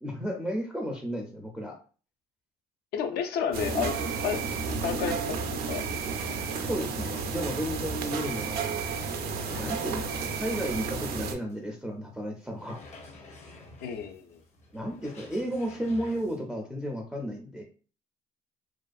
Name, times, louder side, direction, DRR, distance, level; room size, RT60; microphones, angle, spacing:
voice 1, 0.0-1.8 6.7-8.7 9.6-12.8 14.7-17.6, equal, 5° right, 0 dB, 0.4 m, -33 dB
voice 2, 2.9-4.4 4.7-5.9 13.8-14.4, left 7 dB, 75° left, 7 dB, 0.4 m, -32 dB
sound 1, 3.5-11.3, right 5 dB, 65° right, 0.4 m, -32 dB
sound 2, 4.8-10.5 11.0-11.1 11.5-11.6 12.5-16.4, left 2 dB, 40° left, 0.7 m, -49 dB
2.5 x 2.3 x 2.3 m, 0.38 s
cardioid pair, 110°, 17 cm